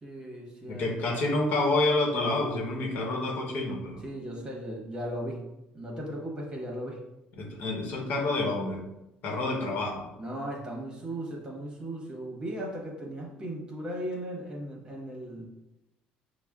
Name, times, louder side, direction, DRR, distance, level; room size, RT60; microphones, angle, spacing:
voice 1, 0.0-1.1 4.0-5.5 5.7-7.0 10.2-15.5, right 1 dB, 25° right, -2 dB, 1.1 m, -37 dB
voice 2, 0.7-4.0 7.4-8.8 9.2-10.0, left 2 dB, 60° left, 0 dB, 0.9 m, -28 dB
5.9 x 2.0 x 2.3 m, 0.90 s
cardioid pair, 105°, 3 cm